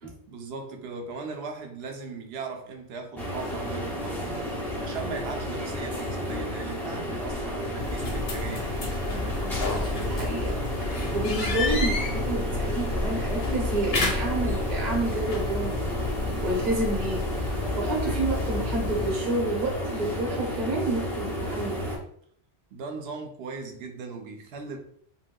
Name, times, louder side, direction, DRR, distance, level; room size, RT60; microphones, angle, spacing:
voice 1, 0.3-4.5 4.8-8.7 22.7-24.8, right 4 dB, 75° right, 4 dB, 0.8 m, -38 dB
sound 1, 3.2-22.0, equal, 5° left, 0.4 m, -32 dB
sound 2, 7.8-19.1, left 3 dB, 70° left, 0.9 m, -31 dB
voice 2, 9.1-21.9, right 2 dB, 45° right, -1 dB, 0.9 m, -30 dB
3.4 x 2.6 x 2.2 m, 0.62 s
omnidirectional pair, 1.1 m